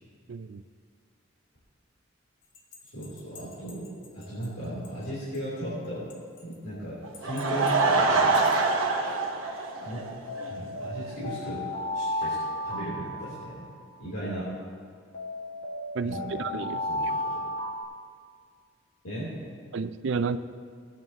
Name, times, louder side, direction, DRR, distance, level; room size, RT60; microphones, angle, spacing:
voice 1, 0.3-0.6 15.9-16.8 19.7-20.4, right 5 dB, 65° right, 12 dB, 0.4 m, -31 dB
sound 1, 2.5-4.5 4.8-4.9 5.3-5.4 6.1-6.5 7.1-7.7 8.2-8.6 10.3-14.0 15.1-17.8, left 1 dB, 65° left, 1.8 m, -34 dB
voice 2, 2.8-6.1 6.4-8.4 9.8-10.1 10.5-11.7 11.9-13.7 14.0-14.5 16.0-16.5 16.9-17.1 19.0-19.6, right 1 dB, 90° left, -9 dB, 3.2 m, -36 dB
Laughter / Crowd, 7.0-10.5 10.8-10.9 11.5-11.6 11.7-11.8, right 3 dB, 90° right, 1.2 m, -25 dB
18.0 x 9.2 x 2.9 m, 2.2 s
head